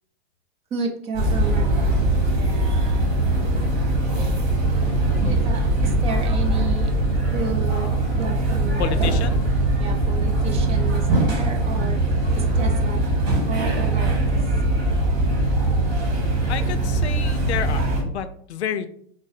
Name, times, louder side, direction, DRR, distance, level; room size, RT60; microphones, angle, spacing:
voice 1, 0.7-3.4 5.2-6.9 7.3-9.3 9.8-12.0 12.3-13.0 13.5-14.4, right 4 dB, 20° right, 4 dB, 0.4 m, -33 dB
sound 1, 1.1-18.0, right 2 dB, 45° right, 1.5 m, -21 dB
voice 2, 8.8-9.4 16.5-18.9, left 9 dB, 85° left, 11 dB, 0.5 m, -30 dB
3.7 x 2.0 x 4.0 m, 0.65 s
hypercardioid pair, 125°, 32 cm